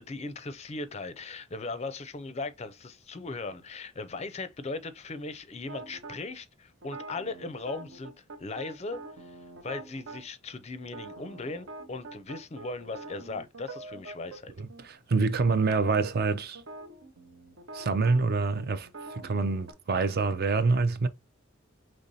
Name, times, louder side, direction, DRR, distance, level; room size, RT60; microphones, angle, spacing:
voice 1, 0.0-9.4 9.6-14.5, left 3 dB, 30° left, 0.5 m, -38 dB
sound 1, 5.7-6.2 6.8-10.2 10.8-14.4 14.7-14.9 15.2-19.7, right 2 dB, 70° right, 0.9 m, -44 dB
voice 2, 14.6-16.6 17.7-18.9 19.2-21.1, right 4 dB, 50° right, 0.5 m, -26 dB
5.3 x 3.2 x 2.7 m
head